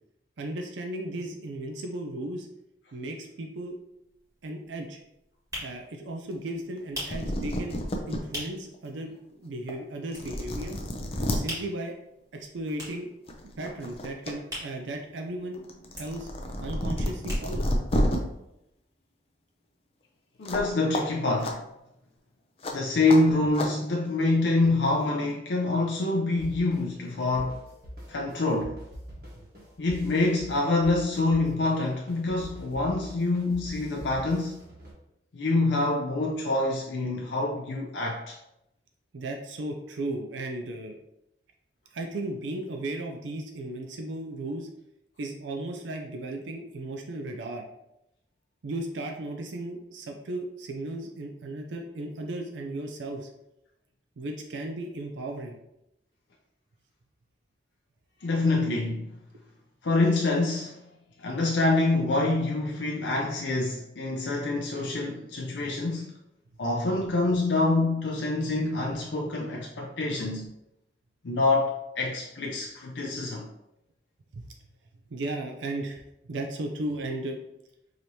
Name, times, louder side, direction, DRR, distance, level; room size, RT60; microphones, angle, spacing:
voice 1, 0.4-2.5 2.9-3.7 4.4-5.0 5.6-7.8 8.1-9.1 9.4-10.8 11.3-11.9 12.3-13.1 13.6-15.6 16.0-16.3 16.6-17.7 39.1-41.0 41.9-44.7 45.2-47.6 48.6-53.3 54.2-55.6 74.3-74.4 75.1-76.0 76.3-77.4, right 1 dB, 85° right, 0.5 m, -35 dB
sound 1, 3.7-3.8 4.1-8.8 9.1-9.2 9.5-10.7 11.0-15.5 15.8-17.8 18.2-18.3 18.4-18.5, equal, 20° right, 1.4 m, -41 dB
sound 2, 6.8-6.9 7.1-8.2 8.7-8.8 9.7-9.8 10.1-11.4 12.7-12.9 13.3-14.3 14.7-18.2 20.5-20.7 20.9-21.0 21.4-21.5 22.6-22.7 23.1-23.2 23.6-23.7, left 1 dB, 30° left, 0.5 m, -30 dB
voice 2, 20.4-21.6 22.7-27.6 28.1-28.8 29.8-34.6 35.3-38.4 58.2-59.1 59.8-60.8 61.2-66.1 66.6-70.5 71.2-73.5, left 2 dB, 80° left, 0.5 m, -26 dB
sound 3, 26.4-34.9, equal, 55° right, 1.2 m, -44 dB
4.9 x 3.0 x 2.7 m
head